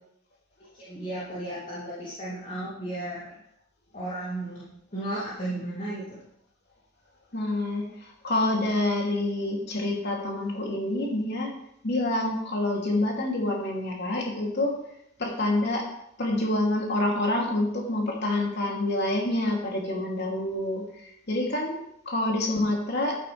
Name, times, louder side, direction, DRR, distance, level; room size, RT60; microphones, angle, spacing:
voice 1, 0.7-3.4 3.9-6.2, right 1 dB, 40° left, -8 dB, 3.0 m, -34 dB
voice 2, 7.3-11.5 11.8-14.8 15.2-15.9 16.2-21.8 22.0-23.2, left 1 dB, 55° left, -1 dB, 3.1 m, -27 dB
14.5 x 9.4 x 3.5 m, 0.77 s
head